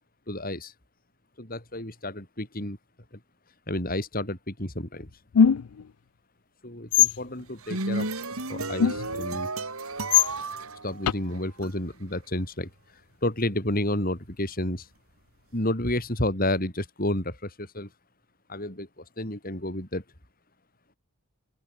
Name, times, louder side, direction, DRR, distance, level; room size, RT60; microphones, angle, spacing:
voice 1, 0.3-0.7 1.4-2.8 3.7-5.1 6.6-8.1 8.5-9.5 10.8-12.7 13.2-14.9 15.5-17.9 18.5-20.0, left 1 dB, 40° left, 4.9 m, -30 dB
sound 1, 5.3-5.8 6.9-7.2 8.8-9.2 10.1-10.3 11.1-11.2, left 8 dB, 85° left, 0.5 m, -19 dB
sound 2, 7.4-11.7, right 2 dB, 75° right, 5.9 m, -33 dB
open air
head